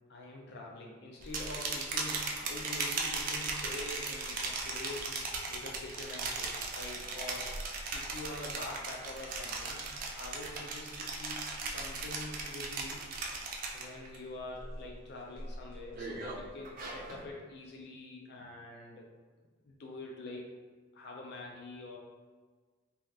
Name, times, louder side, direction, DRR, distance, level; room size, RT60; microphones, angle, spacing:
voice 1, 0.1-5.2 5.5-7.5 7.9-9.9 10.2-13.0 13.7-19.1 19.6-20.5 20.9-22.0, left 2 dB, 60° left, -1 dB, 0.4 m, -45 dB
sound 1, 1.2-14.2 14.5-14.9 15.4-17.2, right 3 dB, 45° right, 0.4 m, -38 dB
2.8 x 2.3 x 3.2 m, 1.4 s
head